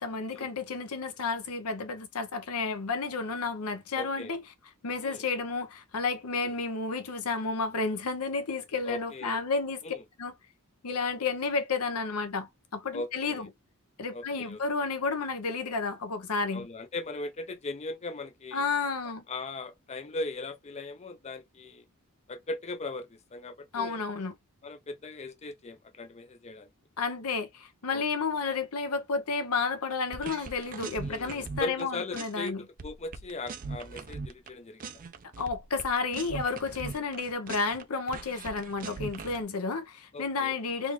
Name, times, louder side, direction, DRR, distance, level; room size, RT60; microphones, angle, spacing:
voice 1, 0.0-4.4 4.8-9.8 10.2-10.3 10.8-13.5 14.0-16.7 18.5-19.2 23.7-24.3 27.0-32.6 35.4-40.9, left 4 dB, 80° left, 0.8 m, -31 dB
voice 2, 3.9-4.3 5.0-5.2 6.3-6.5 8.8-9.4 9.8-10.0 12.9-13.5 14.1-14.6 16.5-18.6 19.3-21.8 22.3-24.0 24.6-26.7 27.9-28.0 31.0-34.9 40.1-40.6, left 2 dB, 30° left, 0.5 m, -39 dB
sound 1, 30.1-31.8 32.1-32.5 32.8-34.5 34.8-37.8 38.1-39.4, right 4 dB, 40° right, 0.5 m, -40 dB
3.5 x 2.5 x 3.1 m
head